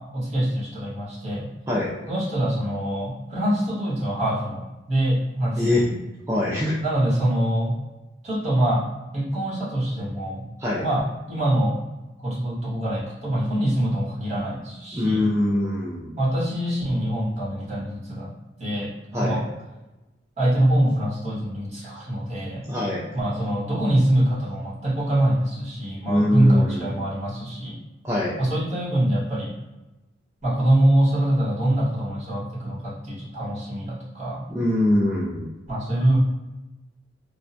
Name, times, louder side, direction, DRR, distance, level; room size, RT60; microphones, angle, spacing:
voice 1, 0.1-1.5 2.1-5.8 6.8-7.7 8.2-8.8 9.1-10.4 10.8-11.8 12.2-15.3 16.2-18.3 18.6-19.4 20.4-22.6 23.1-27.8 28.4-29.5 30.4-34.4 35.7-36.2, right 1 dB, 40° right, -8 dB, 1.5 m, -24 dB
voice 2, 6.3-6.8 10.6-10.8 14.9-16.1 19.1-19.4 22.7-23.0 26.1-27.0 28.0-28.4 34.5-35.5, left 1 dB, 15° right, -7 dB, 0.4 m, -23 dB
3.4 x 2.1 x 2.6 m, 1.1 s
head